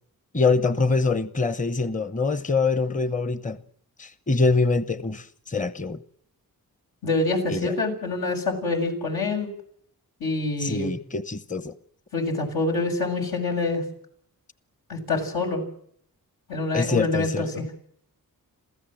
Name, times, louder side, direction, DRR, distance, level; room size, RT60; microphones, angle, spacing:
voice 1, 0.3-3.6 4.0-6.0 7.5-7.7 10.6-11.7 16.7-17.7, left 3 dB, 20° left, 1.0 m, -24 dB
voice 2, 7.0-9.5 10.2-10.9 12.1-13.8 14.9-15.6 16.5-17.7, left 3 dB, 80° left, 7.5 m, -26 dB
27.5 x 16.0 x 7.8 m
cardioid pair, 80°, 36 cm